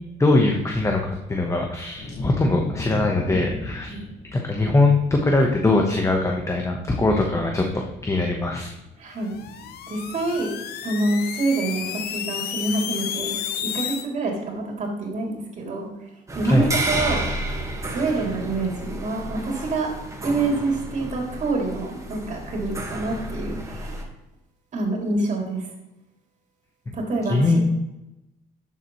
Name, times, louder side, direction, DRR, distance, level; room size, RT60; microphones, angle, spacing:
voice 1, 0.2-4.0 4.3-8.7 16.4-16.7 26.9-27.0 27.3-27.6, left 2 dB, 15° left, 2 dB, 1.1 m, -21 dB
Thunder, 1.9-11.4 11.6-12.4 12.8-12.9 13.3-13.5, left 3 dB, 55° left, 2.1 m, -39 dB
voice 2, 9.0-9.3 9.9-10.5 10.8-13.3 13.6-15.9 16.3-17.2 17.9-19.9 20.2-24.0 24.7-25.7 26.9-27.6, right 2 dB, 45° right, 0 dB, 3.0 m, -26 dB
sound 1, 9.2-14.1, left 9 dB, 70° left, 0.9 m, -32 dB
sound 2, 16.3-24.0, right 1 dB, 20° right, 1.5 m, -31 dB
11.0 x 7.1 x 3.1 m, 0.96 s
cardioid pair, 110°, 17 cm